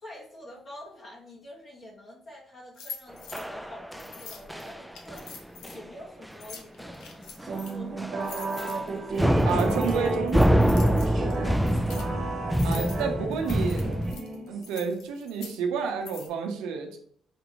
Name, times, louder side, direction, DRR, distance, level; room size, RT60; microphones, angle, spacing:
voice 1, 0.0-9.8 11.2-11.9 12.5-12.9, left 1 dB, 55° left, -4 dB, 1.3 m, -46 dB
sound 1, 2.8-3.4 4.0-5.8 6.3-7.8 8.2-12.1 12.5-13.0 13.3-15.6 16.1-16.3, left 5 dB, 80° left, 0.7 m, -44 dB
sound 2, 3.3-4.2 4.5-4.8 5.1-5.3 5.6-5.8 6.2-6.3 6.8-7.1 7.4-7.6 8.0-8.9 9.2-14.1, equal, 5° right, 0.3 m, -25 dB
sound 3, 7.4-14.8, right 3 dB, 55° right, 1.1 m, -34 dB
voice 2, 9.4-10.7 12.6-13.9 14.5-17.0, right 6 dB, 85° right, 4 dB, 0.6 m, -30 dB
5.1 x 2.6 x 2.9 m, 0.63 s
supercardioid pair, 75°, 0 cm